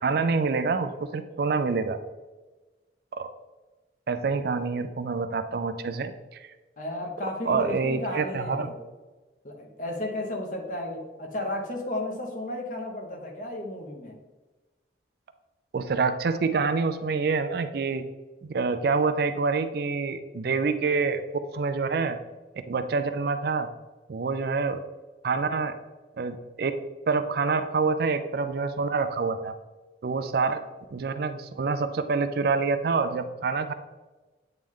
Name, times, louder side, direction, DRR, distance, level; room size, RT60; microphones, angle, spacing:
voice 1, 0.0-2.0 3.1-3.3 4.1-6.5 7.5-8.7 15.7-18.0 18.4-22.2 22.7-23.7 24.1-24.8 25.2-25.7 26.2-26.8 27.1-29.5 30.0-30.6 30.9-33.7, right 4 dB, 55° right, 10 dB, 0.4 m, -27 dB
voice 2, 6.8-8.8 9.4-14.2, left 1 dB, 45° left, 2 dB, 1.0 m, -33 dB
8.5 x 3.2 x 3.6 m, 1.2 s
head